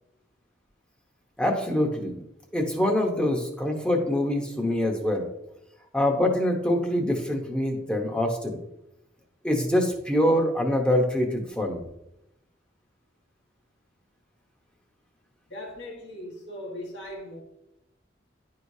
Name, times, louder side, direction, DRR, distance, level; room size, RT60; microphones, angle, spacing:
voice 1, 1.4-2.2 2.5-5.2 5.9-8.6 9.4-11.8, left 1 dB, 5° left, 1 dB, 0.9 m, -25 dB
voice 2, 15.5-17.4, left 1 dB, 75° left, -1 dB, 1.5 m, -39 dB
10.5 x 4.7 x 2.7 m, 0.86 s
head